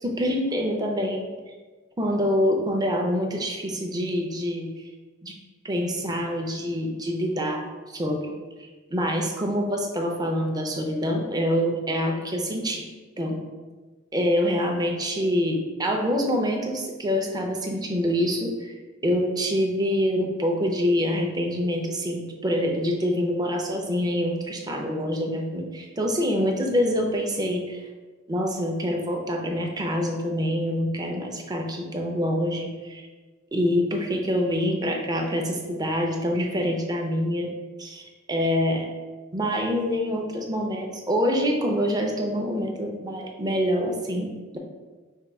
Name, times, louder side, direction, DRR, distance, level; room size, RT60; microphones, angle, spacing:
voice 1, 0.0-1.4 2.0-4.7 5.2-5.3 5.6-7.6 7.9-8.3 8.6-12.9 13.2-13.4 14.1-18.7 19.0-27.8 28.3-33.0 33.5-37.5 37.8-38.9 39.3-44.6, equal, 20° right, 1 dB, 0.5 m, -26 dB
4.4 x 2.3 x 4.7 m, 1.4 s
head